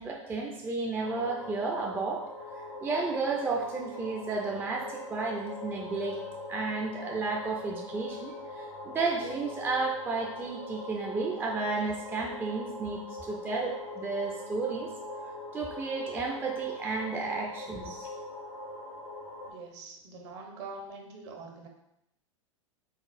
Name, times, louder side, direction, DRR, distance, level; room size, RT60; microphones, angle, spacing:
voice 1, 0.0-2.2 2.8-6.2 6.5-13.0 13.3-14.9 15.5-18.1, right 3 dB, 10° right, 0 dB, 0.4 m, -32 dB
sound 1, 1.0-19.5, left 2 dB, 90° left, 1.0 m, -42 dB
voice 2, 19.5-21.7, right 3 dB, 55° right, 2 dB, 0.9 m, -44 dB
4.0 x 3.4 x 2.5 m, 0.82 s
hypercardioid pair, 100°, 17 cm